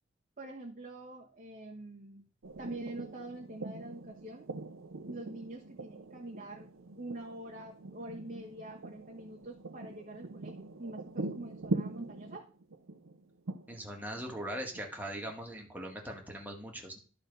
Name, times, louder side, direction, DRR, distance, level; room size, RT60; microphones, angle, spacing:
voice 1, 0.4-2.3 2.6-4.5 5.0-12.5, right 2 dB, 45° right, -2 dB, 1.3 m, -45 dB
sound 1, 2.4-15.5, right 2 dB, 85° right, 0.7 m, -42 dB
voice 2, 13.7-17.0, right 1 dB, 10° right, 1 dB, 1.8 m, -40 dB
12.0 x 4.2 x 5.4 m, 0.37 s
head